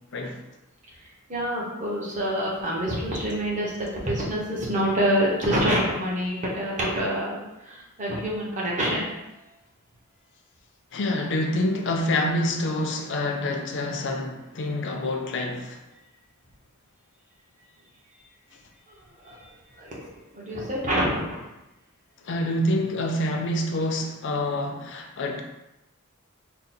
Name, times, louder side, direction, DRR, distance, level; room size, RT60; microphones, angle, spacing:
voice 1, 1.3-9.2 19.2-19.4 19.7-20.1 20.3-21.4, equal, 35° right, -4 dB, 0.9 m, -26 dB
voice 2, 10.9-15.8 22.2-25.4, left 1 dB, 55° left, 3 dB, 0.5 m, -27 dB
3.7 x 2.0 x 4.2 m, 0.95 s
head